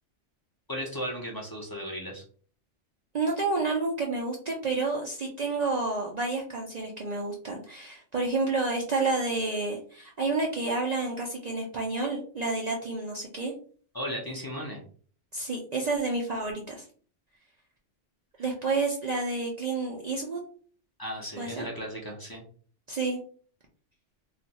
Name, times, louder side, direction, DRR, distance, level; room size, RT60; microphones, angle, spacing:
voice 1, 0.7-2.2 13.9-14.8 18.4-18.5 21.0-22.4, equal, 25° left, -2 dB, 0.5 m, -36 dB
voice 2, 3.1-13.5 15.3-16.8 18.4-20.4 21.4-21.7 22.9-23.2, right 3 dB, 50° right, -1 dB, 0.5 m, -30 dB
2.5 x 2.3 x 4.0 m, 0.44 s
omnidirectional pair, 1.2 m